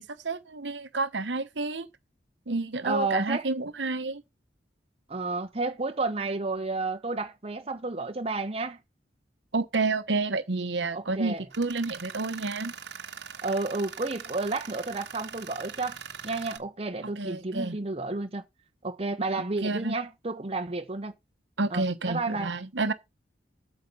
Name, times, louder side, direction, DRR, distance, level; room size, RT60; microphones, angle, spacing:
voice 1, 0.0-1.9 2.5-4.2 9.5-12.7 17.2-17.8 19.6-19.9 21.6-22.9, right 3 dB, 85° right, 1.1 m, -30 dB
voice 2, 2.8-3.5 5.1-8.8 10.9-11.4 13.4-16.0 16.2-18.4 18.8-21.1 21.7-22.5, right 3 dB, 35° right, 1.1 m, -31 dB
Tools, 11.5-16.6, right 7 dB, 70° right, 1.3 m, -42 dB
8.7 x 6.9 x 5.4 m
head